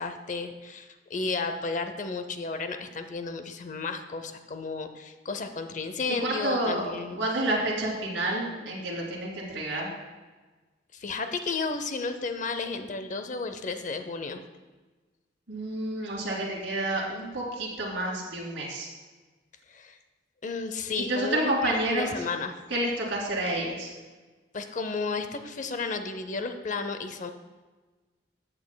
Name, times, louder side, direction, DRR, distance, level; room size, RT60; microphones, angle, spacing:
voice 1, 0.0-7.2 10.9-14.4 19.7-20.0 20.4-22.6 24.5-27.3, left 4 dB, 40° left, 8 dB, 0.6 m, -33 dB
voice 2, 6.1-6.8 7.1-9.9 15.5-18.9 21.0-22.2 22.7-23.9, right 1 dB, 80° right, -3 dB, 2.6 m, -29 dB
14.0 x 8.4 x 2.2 m, 1.3 s
head